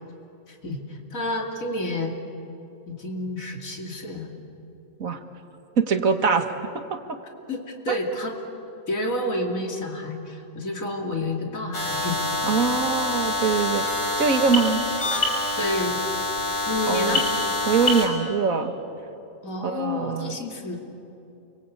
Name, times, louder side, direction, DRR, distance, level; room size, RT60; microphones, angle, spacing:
voice 1, 0.5-2.1 2.9-4.3 7.5-8.3 8.9-12.1 12.6-12.8 15.6-16.0 16.7-17.3 19.4-20.8, left 1 dB, 80° left, 1 dB, 3.1 m, -29 dB
voice 2, 5.8-6.5 6.9-7.0 12.5-13.8 14.2-14.8 16.9-17.2 17.7-18.7 19.6-20.4, right 5 dB, 85° right, 7 dB, 2.0 m, -23 dB
sound 1, 11.7-18.1, left 2 dB, 65° left, 6.1 m, -26 dB
29.5 x 23.0 x 8.5 m, 2.8 s
omnidirectional pair, 1.4 m